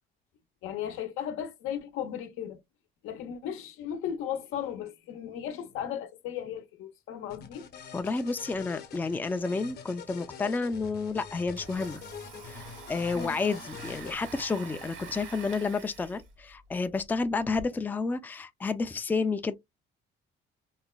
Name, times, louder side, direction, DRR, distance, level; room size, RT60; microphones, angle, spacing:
voice 1, 0.6-2.6 3.0-7.7 13.1-13.4, left 9 dB, 85° left, 0.7 m, -36 dB
sound 1, 7.3-14.1, left 7 dB, 50° left, 0.8 m, -45 dB
voice 2, 7.9-12.0 12.4-19.5, left 4 dB, 10° left, 0.4 m, -30 dB
Domestic sounds home sounds, 11.3-17.6, right 5 dB, 65° right, 1.0 m, -46 dB
4.0 x 2.1 x 2.2 m
cardioid pair, 95°, 21 cm